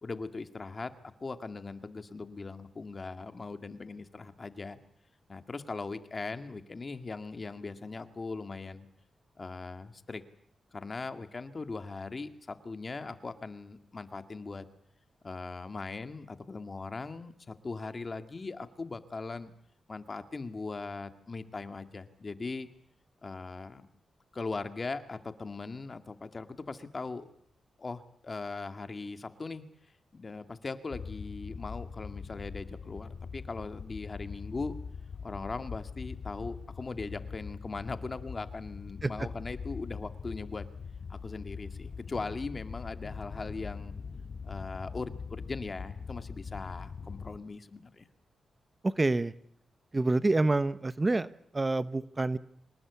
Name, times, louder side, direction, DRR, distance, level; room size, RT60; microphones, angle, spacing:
voice 1, 0.0-0.9 1.2-4.8 5.3-8.9 9.4-10.2 10.7-14.6 15.2-19.5 19.9-22.7 23.2-23.8 24.3-27.3 27.8-29.6 30.1-34.8 35.2-40.6 41.1-44.0 44.4-48.1, left 3 dB, 35° left, 9 dB, 2.1 m, -39 dB
sound 1, 30.9-47.4, left 5 dB, 60° left, 2.3 m, -42 dB
voice 2, 48.8-49.3 49.9-51.3 51.5-52.4, right 2 dB, 25° right, 14 dB, 0.9 m, -27 dB
25.0 x 19.5 x 8.3 m, 0.68 s
cardioid pair, 95°, 0 cm